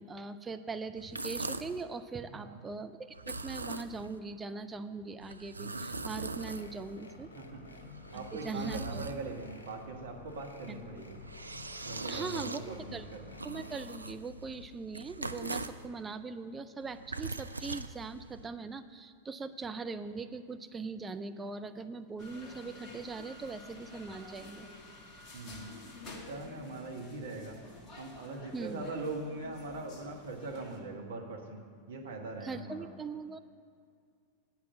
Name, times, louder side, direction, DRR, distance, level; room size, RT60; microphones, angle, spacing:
voice 1, 0.0-7.3 7.7-7.8 8.1-9.0 10.7-10.8 12.1-13.1 13.4-24.7 28.5-28.9 32.4-33.4, right 4 dB, 15° right, 9 dB, 0.5 m, -41 dB
sound 1, 1.0-1.8 3.1-4.2 5.2-7.0 7.7-9.6 11.0-15.9 16.8-18.5, right 3 dB, 80° right, 0.4 m, -41 dB
voice 2, 2.3-2.6 7.3-7.6 8.1-11.1 11.9-13.3 25.3-25.8 26.1-27.6 28.0-31.6 31.9-32.9, right 3 dB, 65° right, 2 dB, 1.3 m, -41 dB
sound 2, 5.8-13.8, left 3 dB, 75° left, 0.9 m, -51 dB
sound 3, 22.2-30.8, left 2 dB, 25° left, 1.6 m, -50 dB
8.3 x 5.9 x 7.4 m, 2.3 s
figure-of-eight pair, 90°, 0 cm